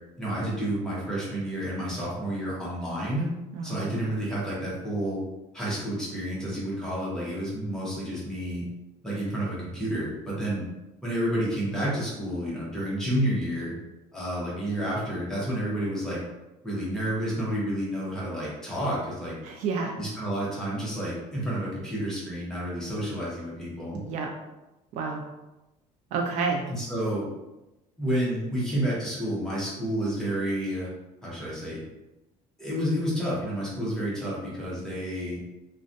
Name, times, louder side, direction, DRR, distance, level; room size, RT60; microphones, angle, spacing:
voice 1, 0.2-3.3 3.6-5.2 5.5-8.6 9.0-10.6 11.0-13.7 14.1-16.2 16.6-19.3 20.0-24.0 26.7-27.3 28.0-30.9 31.2-31.8 32.6-35.4, right 1 dB, 5° left, -7 dB, 0.7 m, -30 dB
voice 2, 3.5-4.0 19.4-19.9 23.9-24.3 24.9-25.2 26.1-26.6, right 4 dB, 60° right, 1 dB, 0.4 m, -30 dB
2.3 x 2.1 x 2.6 m, 0.99 s
cardioid pair, 165°, 14 cm